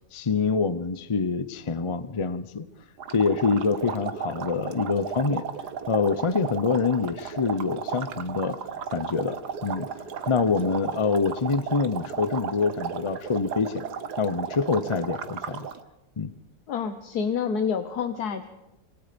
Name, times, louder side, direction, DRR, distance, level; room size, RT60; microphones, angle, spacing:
voice 1, 0.1-2.6 3.1-5.4 5.9-8.6 8.9-9.9 10.3-13.8 14.2-15.7 16.2-16.3, left 4 dB, 40° left, 0.4 m, -26 dB
sound 1, 3.0-15.8, right 7 dB, 80° right, 1.7 m, -35 dB
voice 2, 16.7-18.4, left 6 dB, 75° left, 1.6 m, -28 dB
26.0 x 24.0 x 5.2 m
omnidirectional pair, 1.7 m